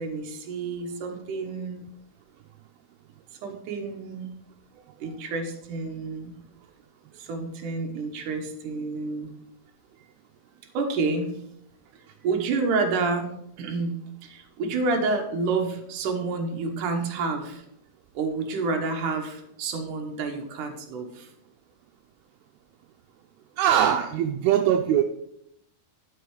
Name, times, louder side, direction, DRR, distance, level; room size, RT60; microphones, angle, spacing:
voice 1, 0.0-1.8 3.4-4.3 5.0-6.3 7.1-9.3 10.7-11.3 12.2-17.6 18.1-21.3, right 3 dB, 65° right, 4 dB, 2.3 m, -29 dB
voice 2, 23.6-25.0, right 10 dB, 80° right, 5 dB, 2.5 m, -21 dB
11.5 x 6.4 x 4.8 m, 0.75 s
omnidirectional pair, 4.7 m